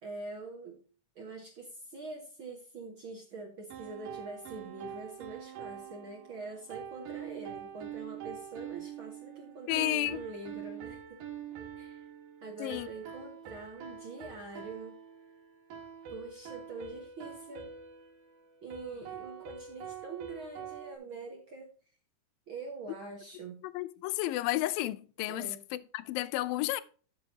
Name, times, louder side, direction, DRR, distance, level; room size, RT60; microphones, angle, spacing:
voice 1, 0.0-0.8 1.1-11.2 11.8-12.0 12.4-14.9 16.1-17.7 18.6-21.7 22.5-23.6 25.3-25.6, right 3 dB, 55° right, 1.5 m, -44 dB
sound 1, 3.7-21.0, right 8 dB, 70° right, 3.1 m, -45 dB
voice 2, 9.7-10.2 12.6-12.9 23.6-26.8, left 16 dB, 85° left, 2.4 m, -32 dB
12.5 x 6.4 x 2.8 m
omnidirectional pair, 4.0 m